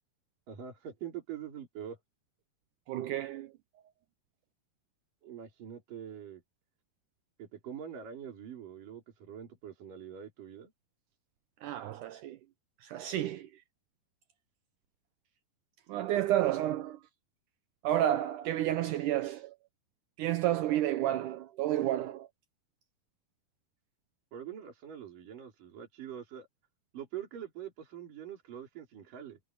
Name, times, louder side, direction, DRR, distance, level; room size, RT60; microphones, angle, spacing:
voice 1, 0.5-2.0 5.2-6.4 7.4-10.7 24.3-26.5 26.9-29.4, right 9 dB, 65° right, 5.3 m, -44 dB
voice 2, 2.9-3.5 11.6-12.4 12.8-13.5 15.9-17.0 17.8-19.5 20.2-22.3, right 13 dB, 80° right, 1.9 m, -31 dB
omnidirectional pair, 4.3 m